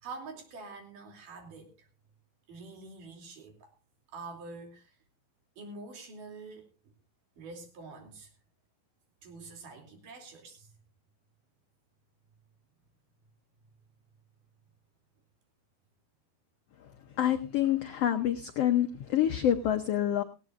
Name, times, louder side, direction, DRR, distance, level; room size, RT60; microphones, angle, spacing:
voice 1, 0.0-1.9 2.5-3.7 4.1-5.0 5.6-6.7 7.4-8.3 9.2-10.7, right 3 dB, 70° right, 3 dB, 4.5 m, -46 dB
voice 2, 17.2-20.2, left 11 dB, 85° left, 7 dB, 1.3 m, -27 dB
18.0 x 17.5 x 2.5 m, 0.31 s
omnidirectional pair, 4.0 m